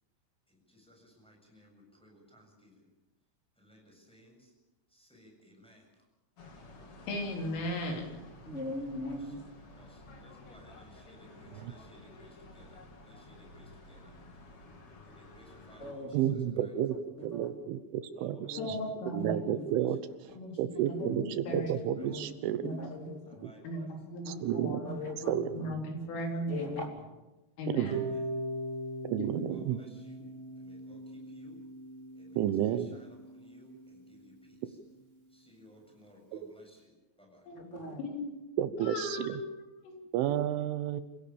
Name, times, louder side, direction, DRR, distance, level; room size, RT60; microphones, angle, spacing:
voice 1, 0.5-2.9 3.6-4.5 4.9-5.9 9.1-9.3 9.8-14.2 15.0-16.8 18.1-18.8 19.7-20.0 20.2-20.9 21.9-22.6 23.2-24.0 24.9-25.1 26.1-26.6 27.9-28.2 29.3-30.3 30.6-31.6 32.1-34.8 35.3-37.5, equal, ahead, 0 dB, 6.9 m, -59 dB
sound 1, 6.4-15.9, left 2 dB, 40° left, 2.3 m, -52 dB
voice 2, 7.1-8.2 18.6-19.4 20.3-21.7 22.6-23.1 23.6-24.9 25.6-26.8 27.6-28.0 29.2-29.5 29.7-29.8 37.5-37.6 38.1-38.3 38.8-39.4 39.8-39.9, equal, 70° left, 2 dB, 6.0 m, -37 dB
voice 3, 8.4-9.4 15.8-16.2 16.4-16.5 16.9-17.5 18.5-18.9 19.2-19.6 21.0-23.4 24.2-25.7 26.5-26.9 37.5-38.0, left 2 dB, 20° left, 1 dB, 2.5 m, -41 dB
voice 4, 16.1-17.0 17.2-18.8 19.1-20.0 20.6-22.7 23.4-23.5 24.3-24.8 25.3-25.5 27.7-28.0 29.0-29.8 32.4-33.0 36.3-36.5 38.6-39.4 40.1-41.0, right 11 dB, 75° right, 12 dB, 3.2 m, -31 dB
Harp, 27.9-34.0, right 2 dB, 55° right, 0.6 m, -40 dB
28.0 x 16.5 x 7.2 m, 1.1 s
omnidirectional pair, 6.0 m